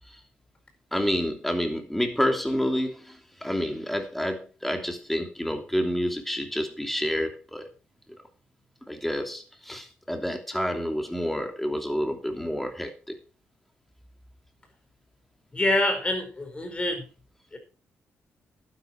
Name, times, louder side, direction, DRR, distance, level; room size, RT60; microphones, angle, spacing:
voice 1, 0.9-7.7 8.9-13.2, equal, 5° left, 4 dB, 3.0 m, -29 dB
voice 2, 15.5-17.1 17.5-17.6, left 1 dB, 25° left, 5 dB, 5.1 m, -26 dB
11.5 x 10.5 x 4.6 m, 0.34 s
cardioid pair, 90°, 5 cm